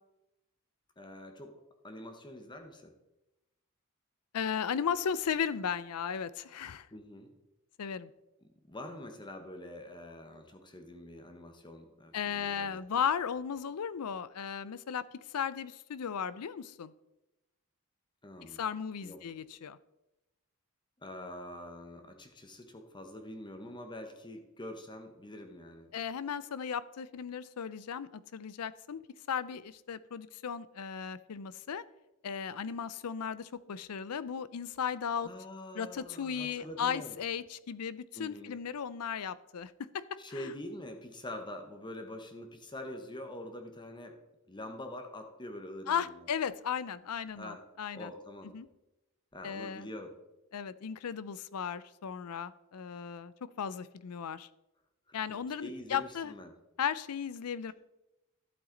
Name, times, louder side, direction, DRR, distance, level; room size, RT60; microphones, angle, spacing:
voice 1, 1.0-1.6 1.8-2.9 6.9-7.3 8.4-12.8 18.2-18.6 19.0-19.2 21.0-25.9 35.2-37.2 38.1-38.6 40.2-44.2 44.5-46.3 47.4-47.6 47.9-48.5 49.3-50.1 55.1-56.5, left 1 dB, 20° left, 5 dB, 1.0 m, -45 dB
voice 2, 4.3-6.9 7.8-8.1 12.1-15.0 15.3-16.9 18.6-19.8 25.9-29.0 29.3-31.8 32.2-35.3 35.7-40.5 45.9-48.1 48.5-48.7 49.4-49.9 50.5-53.3 53.6-54.5 55.1-56.3 56.8-57.7, left 7 dB, 85° left, 17 dB, 0.5 m, -36 dB
12.0 x 7.9 x 3.9 m, 0.94 s
head